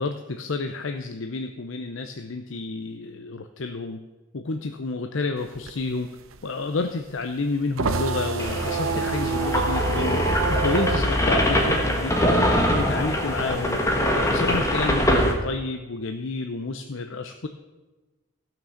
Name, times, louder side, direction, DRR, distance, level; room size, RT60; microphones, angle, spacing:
voice 1, 0.0-4.0 4.3-6.1 6.4-10.2 10.5-12.5 12.8-13.8 14.3-17.5, left 3 dB, 75° left, 6 dB, 0.7 m, -30 dB
sound 1, 5.4-12.5 12.8-14.6, right 4 dB, 90° right, 0.7 m, -28 dB
sound 2, 8.4-15.3, left 1 dB, 15° left, 1.4 m, -23 dB
15.5 x 6.1 x 7.1 m, 1.2 s
head